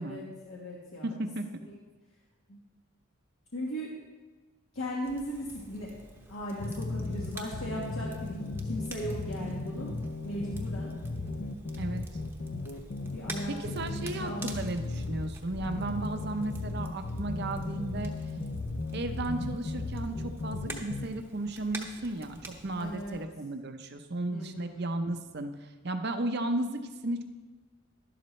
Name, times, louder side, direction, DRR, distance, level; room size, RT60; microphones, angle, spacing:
voice 1, 0.0-1.3 1.6-1.7 2.5-2.6 3.5-3.9 4.7-6.0 6.3-10.0 10.2-10.9 13.1-14.6 22.8-23.2 24.3-24.9, equal, 75° left, -5 dB, 1.6 m, -38 dB
voice 2, 1.0-1.4 11.7-12.0 13.5-18.1 18.9-27.2, right 2 dB, 50° right, 7 dB, 0.7 m, -34 dB
Crackle, 5.0-23.2, right 2 dB, 10° right, 0.9 m, -48 dB
sound 1, 6.6-21.1, left 2 dB, 55° left, 0.6 m, -36 dB
12.0 x 11.5 x 3.2 m, 1.3 s
head